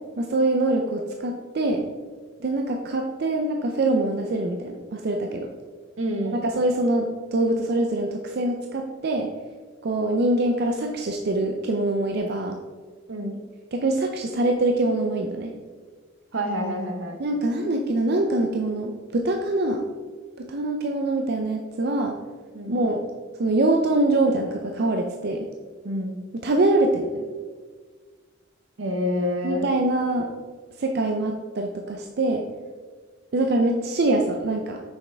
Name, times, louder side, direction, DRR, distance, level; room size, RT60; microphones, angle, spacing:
voice 1, 0.2-1.9 2.4-5.5 6.3-9.3 9.8-12.6 13.7-15.5 17.2-19.8 20.4-22.2 22.7-23.0 23.4-25.5 26.4-27.2 29.4-30.3 30.8-32.5 33.3-34.8, right 2 dB, 55° right, 3 dB, 0.5 m, -24 dB
voice 2, 6.0-6.4 13.1-13.4 16.3-17.2 22.5-22.8 25.8-26.1 28.8-29.7, left 1 dB, 80° right, 4 dB, 1.0 m, -27 dB
6.2 x 5.4 x 3.4 m, 1.5 s
head